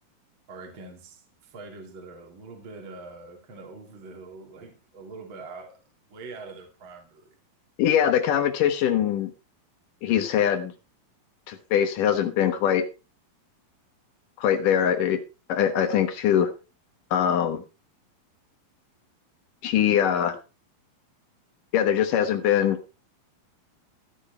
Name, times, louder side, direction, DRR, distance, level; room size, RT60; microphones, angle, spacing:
voice 1, 0.5-5.8 6.1-7.4, right 3 dB, 35° right, 3.3 m, -43 dB
voice 2, 7.8-9.3 10.0-10.7 11.5-12.9 14.4-15.2 15.5-16.5 17.1-17.6 19.6-20.4 21.7-22.8, left 9 dB, 65° left, 2.6 m, -22 dB
14.0 x 9.7 x 4.3 m
omnidirectional pair, 4.4 m